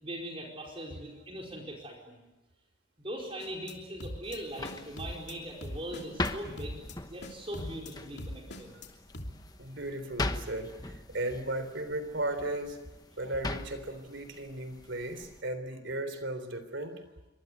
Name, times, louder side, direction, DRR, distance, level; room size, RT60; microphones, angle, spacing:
voice 1, 0.0-2.2 3.0-6.8 7.1-8.7, equal, 30° right, -1 dB, 4.7 m, -40 dB
sound 1, 3.4-3.7 4.0-4.4 4.6-5.3 5.6-6.3 6.6-6.9 7.2-7.9 8.2-8.9 9.1-9.3, left 1 dB, 55° left, 3.0 m, -41 dB
sound 2, 4.2-15.4, left 2 dB, 20° left, 1.0 m, -41 dB
voice 2, 9.6-12.8 13.2-17.0, right 1 dB, 65° right, 11 dB, 3.8 m, -36 dB
27.0 x 24.5 x 8.2 m, 1.0 s
head